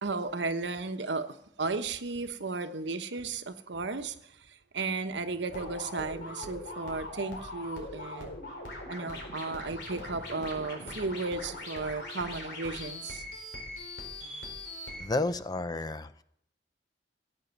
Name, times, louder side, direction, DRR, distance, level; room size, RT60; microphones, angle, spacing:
voice 1, 0.0-1.3 1.6-8.4 8.9-13.2, right 3 dB, 80° right, 9 dB, 1.0 m, -34 dB
sound 1, 5.5-15.1, left 1 dB, 75° left, 4.4 m, -41 dB
voice 2, 15.0-16.2, left 2 dB, 20° left, 13 dB, 0.5 m, -31 dB
16.0 x 8.6 x 7.0 m, 0.72 s
head